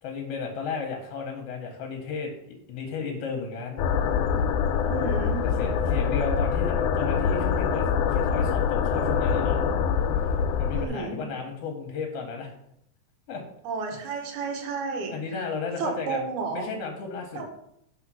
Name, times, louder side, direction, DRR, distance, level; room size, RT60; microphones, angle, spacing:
voice 1, 0.0-2.3 2.7-3.8 5.6-9.6 10.6-12.5 13.3-13.4 13.9-14.0 15.1-16.3 16.5-17.4, left 5 dB, 65° left, 2 dB, 1.7 m, -33 dB
sound 1, 3.8-10.9, left 6 dB, 90° left, 2.0 m, -24 dB
voice 2, 4.8-5.4 10.7-11.2 13.6-15.5 15.8-16.7 17.4-17.5, right 4 dB, 85° right, 3 dB, 2.5 m, -32 dB
5.0 x 4.2 x 5.9 m, 0.74 s
omnidirectional pair, 3.4 m